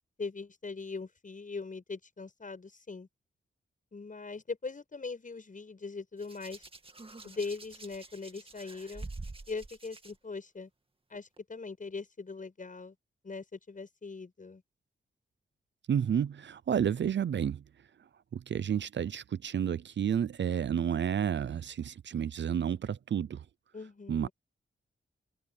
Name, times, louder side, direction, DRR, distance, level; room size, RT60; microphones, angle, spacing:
voice 1, 0.2-3.1 3.9-6.6 7.2-9.1 9.5-10.7 11.1-13.0 13.2-14.6 23.7-24.3, left 4 dB, 40° left, 7.5 m, -41 dB
Hands, 6.2-10.1 11.1-11.4, right 3 dB, 25° right, 2.2 m, -47 dB
voice 2, 15.9-17.6 18.3-23.4 24.1-24.3, right 8 dB, 65° right, 0.6 m, -31 dB
wide cardioid pair, 95°, 20 cm